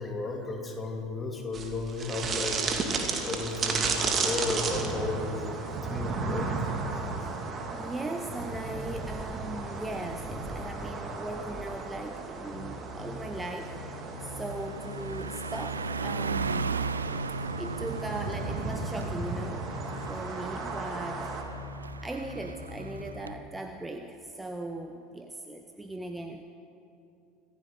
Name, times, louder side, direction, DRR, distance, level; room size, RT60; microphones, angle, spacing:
voice 1, 0.0-2.9 3.2-6.7, left 2 dB, 20° left, 2 dB, 2.6 m, -34 dB
sound 1, 1.5-21.4, right 4 dB, 30° right, 2.0 m, -34 dB
voice 2, 7.2-13.7 14.2-16.9 17.6-19.6 20.1-21.3 22.0-26.4, right 2 dB, 10° right, 5 dB, 0.8 m, -39 dB
sound 2, 8.4-23.4, left 2 dB, 65° left, 2.0 m, -44 dB
Car passing by, 11.7-12.0 12.4-23.3, right 5 dB, 80° right, 0.4 m, -37 dB
25.5 x 14.5 x 3.7 m, 2.7 s
figure-of-eight pair, 70°, 0 cm